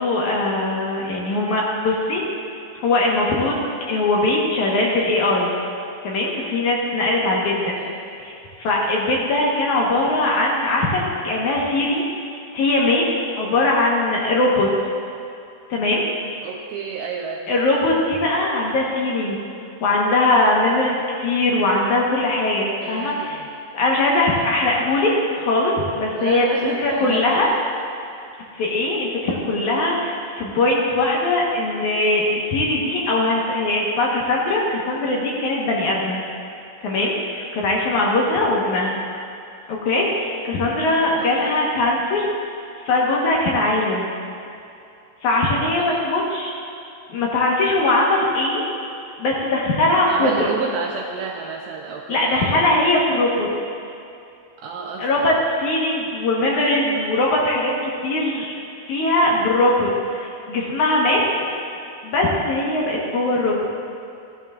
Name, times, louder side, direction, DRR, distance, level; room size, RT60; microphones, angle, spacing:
voice 1, 0.0-2.2 2.8-3.6 3.9-5.5 6.0-7.8 8.2-12.0 12.5-13.1 13.4-14.7 15.7-16.0 17.5-19.4 19.8-20.9 21.2-23.4 23.7-27.5 28.6-36.2 36.8-39.0 39.7-42.2 42.8-44.1 45.2-46.5 47.1-48.6 49.2-50.5 52.1-53.5 55.0-58.5 58.9-61.2 62.0-63.6, left 2 dB, 60° left, -3 dB, 2.3 m, -20 dB
voice 2, 7.4-8.0 16.4-17.5 22.8-23.4 26.2-27.2 41.2-41.5 45.8-46.1 50.1-52.7 54.6-55.3, right 5 dB, 75° right, 0 dB, 2.0 m, -31 dB
15.5 x 12.5 x 2.4 m, 2.6 s
omnidirectional pair, 4.4 m